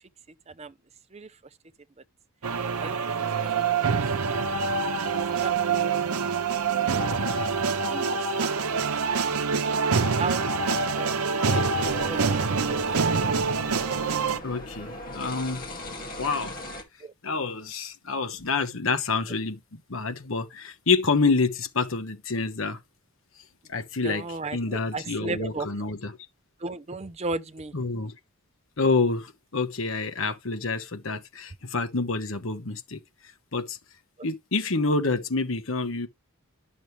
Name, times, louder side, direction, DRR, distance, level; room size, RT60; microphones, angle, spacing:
sound 1, 2.4-14.4, right 5 dB, 80° right, 0.8 m, -25 dB
voice 1, 3.4-3.7 5.4-5.5 7.9-8.9 9.2-9.4 9.6-12.8 17.0-17.1 24.0-25.7 26.6-27.7, right 3 dB, 30° right, 0.5 m, -35 dB
sound 2, 11.8-16.8, left 1 dB, 40° left, 2.1 m, -39 dB
voice 2, 14.4-15.7 16.2-16.5 17.2-22.8 23.7-24.3 24.5-26.2 27.7-28.1 28.8-33.0 33.5-33.8 34.2-36.1, left 4 dB, 60° left, 1.1 m, -27 dB
11.0 x 6.4 x 3.2 m
head